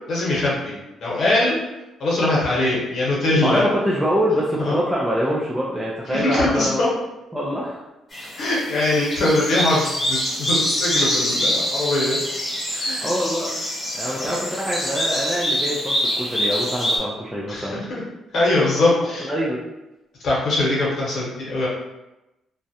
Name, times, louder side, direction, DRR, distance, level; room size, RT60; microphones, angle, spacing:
voice 1, 0.1-0.7 1.0-1.6 2.0-3.6 4.6-4.8 6.1-6.9 8.4-12.2 12.7-13.1 14.1-14.3 17.5-18.0 18.3-19.3 20.2-21.7, left 2 dB, 60° left, -5 dB, 1.0 m, -22 dB
voice 2, 3.4-6.8 7.3-7.8 13.0-13.5 13.9-17.8 19.2-19.6, equal, 10° right, -6 dB, 0.4 m, -24 dB
sound 1, 8.1-17.0, equal, 30° left, 0.9 m, -25 dB
2.3 x 2.0 x 2.7 m, 0.97 s
cardioid pair, 90°, 0 cm